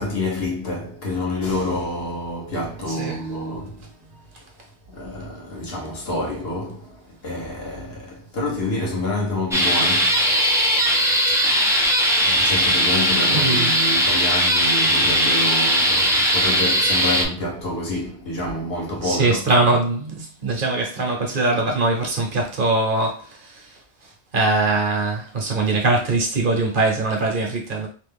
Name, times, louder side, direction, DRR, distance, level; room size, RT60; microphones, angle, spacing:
voice 1, 0.0-3.9 4.9-10.5 11.3-11.4 12.2-19.5, left 1 dB, 65° left, 1.3 m, -28 dB
sound 1, 9.5-17.2, equal, 5° right, 0.3 m, -19 dB
voice 2, 13.3-13.7 19.0-23.6 24.3-27.9, right 2 dB, 55° right, 0.9 m, -22 dB
3.2 x 2.2 x 3.4 m
omnidirectional pair, 1.1 m